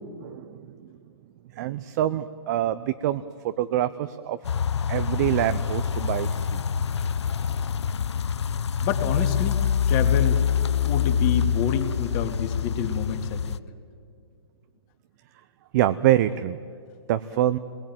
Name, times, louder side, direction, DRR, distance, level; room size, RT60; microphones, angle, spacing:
voice 1, 0.2-0.6 1.6-4.4 4.9-6.6 15.7-16.6 17.1-17.6, right 13 dB, 40° right, 11 dB, 0.8 m, -25 dB
sound 1, 4.4-13.6, left 8 dB, 90° left, 0.7 m, -25 dB
voice 2, 8.8-9.6 9.9-10.4 10.8-13.4, left 7 dB, 35° left, 5 dB, 2.5 m, -28 dB
27.5 x 22.0 x 9.2 m, 2.3 s
hypercardioid pair, 145°, 14 cm